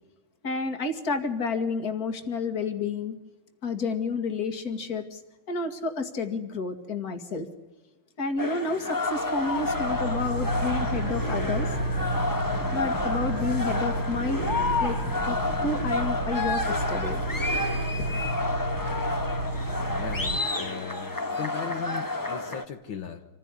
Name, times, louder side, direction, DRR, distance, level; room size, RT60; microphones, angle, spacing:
voice 1, 0.4-3.1 3.6-5.2 5.5-7.5 8.2-11.7 12.7-14.4 14.8-15.0 15.3-17.2, left 4 dB, 45° left, 6 dB, 2.5 m, -30 dB
sound 1, 8.4-22.6, left 2 dB, 15° left, 1.0 m, -30 dB
sound 2, 9.1-20.4, right 1 dB, 50° right, 4.7 m, -31 dB
voice 2, 19.9-23.3, left 8 dB, 70° left, 4 dB, 2.0 m, -38 dB
27.0 x 15.5 x 9.9 m, 1.1 s
omnidirectional pair, 2.2 m